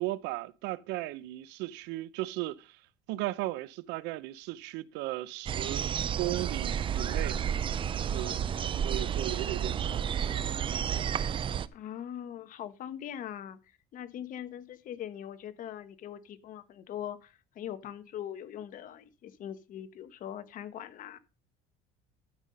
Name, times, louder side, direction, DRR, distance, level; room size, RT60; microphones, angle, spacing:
voice 1, 0.0-2.8 3.1-7.4 8.0-8.4 8.8-10.0, right 17 dB, 75° right, 0.7 m, -36 dB
sound 1, 5.5-11.7, right 8 dB, 30° right, 0.5 m, -31 dB
voice 2, 11.7-13.6 13.9-21.2, left 10 dB, 45° left, 1.2 m, -41 dB
12.5 x 5.5 x 5.4 m
cardioid pair, 130°, 18 cm